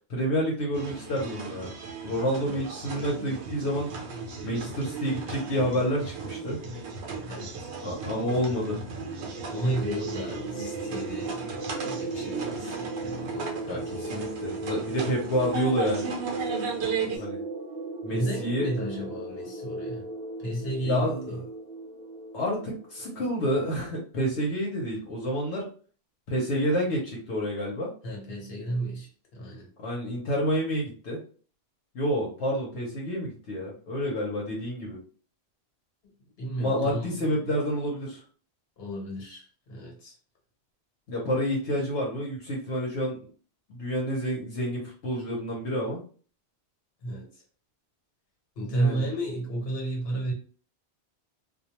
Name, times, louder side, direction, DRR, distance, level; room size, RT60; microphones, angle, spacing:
voice 1, 0.1-1.7 2.0-3.9 4.4-6.6 7.8-8.8 13.6-16.1 17.1-17.4 18.0-18.7 20.8-21.4 22.3-25.7 26.3-27.9 29.8-31.2 31.9-35.0 36.6-38.2 41.1-43.2 43.7-46.0 48.6-49.0, equal, 85° left, -3 dB, 1.0 m, -29 dB
sound 1, 0.7-17.2, right 4 dB, 85° right, 0.9 m, -36 dB
sound 2, 8.9-23.3, right 3 dB, 55° right, 0.4 m, -37 dB
voice 2, 9.5-12.9 13.3-14.2 16.8-17.3 18.1-20.1 20.4-21.4 28.0-29.7 36.4-37.3 38.8-40.1 47.0-47.3 48.6-50.3, right 1 dB, 65° left, -1 dB, 1.2 m, -32 dB
2.3 x 2.2 x 2.8 m, 0.41 s
omnidirectional pair, 1.1 m